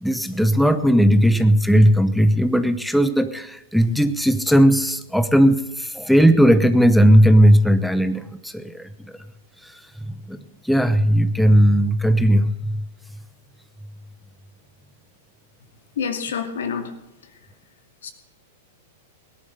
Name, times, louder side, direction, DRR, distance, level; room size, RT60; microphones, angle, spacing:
voice 1, 0.0-8.9 9.6-9.8 10.1-10.4 10.6-12.8, equal, ahead, 10 dB, 0.9 m, -17 dB
voice 2, 16.0-16.9 18.0-18.1, left 6 dB, 75° left, 6 dB, 2.4 m, -27 dB
18.0 x 11.0 x 6.6 m, 0.96 s
hypercardioid pair, 110°, 0 cm